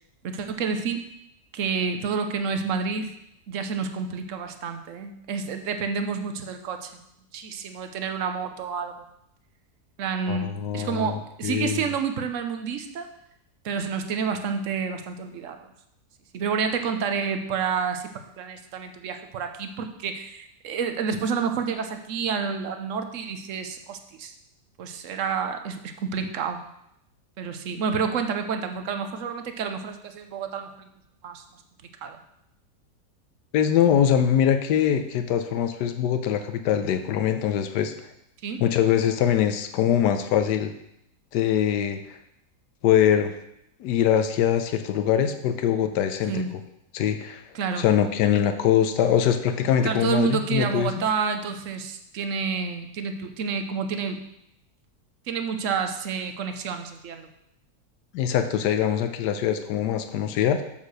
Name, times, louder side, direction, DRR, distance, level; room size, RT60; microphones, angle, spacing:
voice 1, 0.2-1.0 1.5-3.1 3.5-6.9 7.3-9.1 10.0-13.1 13.6-15.6 16.3-24.3 24.8-26.6 27.4-30.9 31.2-31.4 32.0-32.2 38.4-38.6 46.3-46.5 47.5-47.9 49.8-54.2 55.3-57.3, right 6 dB, 60° right, 7 dB, 1.0 m, -29 dB
voice 2, 10.3-11.9 33.5-37.9 38.6-40.7 41.3-42.2 42.8-43.3 43.8-46.4 46.9-47.4 47.8-50.9 58.1-60.6, left 9 dB, 85° left, 8 dB, 1.3 m, -23 dB
6.5 x 5.5 x 6.3 m, 0.79 s
omnidirectional pair, 1.8 m